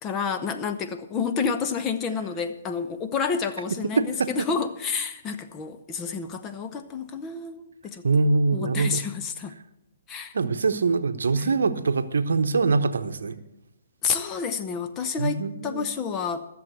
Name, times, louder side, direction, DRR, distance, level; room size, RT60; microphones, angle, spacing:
voice 1, 0.0-9.5 10.1-10.3 11.4-11.6 14.0-16.5, left 6 dB, 20° left, 8 dB, 0.9 m, -30 dB
voice 2, 4.0-4.5 8.0-9.0 10.3-13.4 15.2-15.9, right 4 dB, 75° right, 11 dB, 0.9 m, -23 dB
14.0 x 7.2 x 8.0 m, 0.88 s
hypercardioid pair, 135°, 0 cm